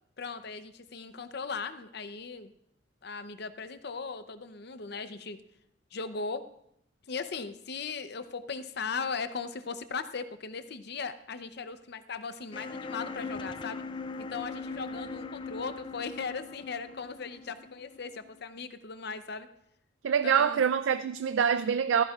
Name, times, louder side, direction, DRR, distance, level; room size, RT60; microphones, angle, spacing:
voice 1, 0.2-2.5 3.0-5.4 5.9-6.4 7.1-13.8 14.3-19.5 20.2-20.6, left 5 dB, 55° left, 0.7 m, -38 dB
sound 1, 12.5-18.4, left 3 dB, 25° left, 0.3 m, -40 dB
voice 2, 20.0-22.0, right 7 dB, 75° right, 0.4 m, -25 dB
15.0 x 14.0 x 2.4 m
head